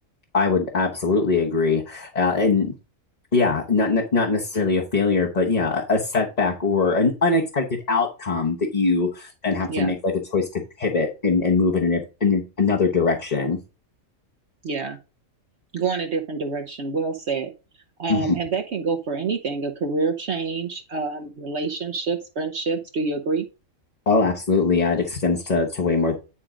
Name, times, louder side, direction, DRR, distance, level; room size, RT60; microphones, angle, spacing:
voice 1, 0.3-2.7 3.3-13.6 18.1-18.4 24.1-26.1, left 4 dB, 35° left, -1 dB, 1.1 m, -22 dB
voice 2, 14.6-15.0 15.7-17.5 18.0-23.5, right 4 dB, 60° right, 4 dB, 1.0 m, -27 dB
10.0 x 3.7 x 5.0 m, 0.31 s
omnidirectional pair, 1.4 m